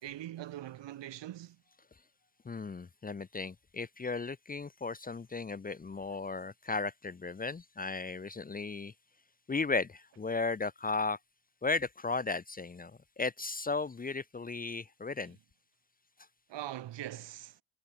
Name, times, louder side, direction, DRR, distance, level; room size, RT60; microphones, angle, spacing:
voice 1, 0.0-1.6 16.5-17.6, right 13 dB, 65° right, 4.0 m, -42 dB
voice 2, 2.4-8.9 9.5-11.2 11.6-12.9 13.2-15.4, left 4 dB, 20° left, 1.0 m, -35 dB
cardioid pair, 135°, 47 cm